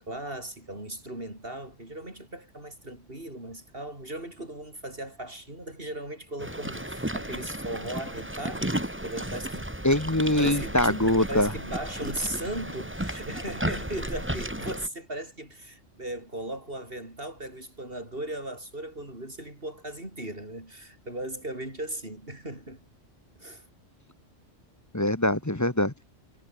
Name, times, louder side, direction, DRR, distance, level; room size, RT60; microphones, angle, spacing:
voice 1, 0.0-9.7 10.4-22.8 23.4-23.7, right 1 dB, 45° right, 7.9 m, -37 dB
sound 1, 6.4-14.9, right 1 dB, 10° right, 2.4 m, -34 dB
voice 2, 9.8-11.5 24.9-25.9, left 1 dB, 15° left, 1.4 m, -23 dB
omnidirectional pair, 1.3 m